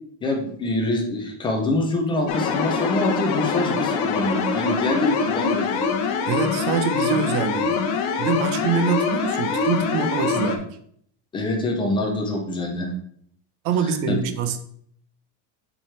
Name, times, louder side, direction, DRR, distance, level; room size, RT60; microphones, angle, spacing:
voice 1, 0.2-5.8 11.3-12.9 13.8-14.2, left 2 dB, 10° left, 1 dB, 0.3 m, -25 dB
sound 1, 2.3-10.6, left 5 dB, 60° left, 1.1 m, -24 dB
voice 2, 6.3-7.9 8.2-10.8 13.6-14.6, right 6 dB, 55° right, 9 dB, 0.8 m, -24 dB
7.4 x 4.7 x 3.2 m, 0.65 s
cardioid pair, 180°, 47 cm